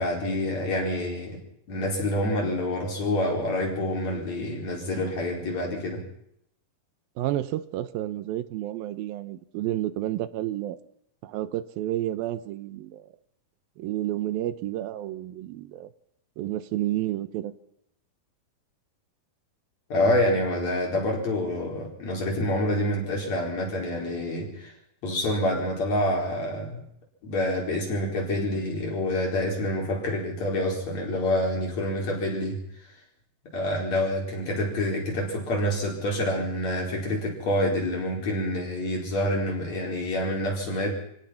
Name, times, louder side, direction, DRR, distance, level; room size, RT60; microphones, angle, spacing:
voice 1, 0.0-1.4 1.7-6.0 19.9-24.7 25.0-26.8 27.2-32.6 33.5-41.0, left 1 dB, 50° left, 0 dB, 5.8 m, -27 dB
voice 2, 7.2-10.8 11.2-13.0 13.8-15.9 16.4-17.5, right 14 dB, 85° right, 14 dB, 2.8 m, -30 dB
26.0 x 17.0 x 5.8 m, 0.74 s
omnidirectional pair, 4.1 m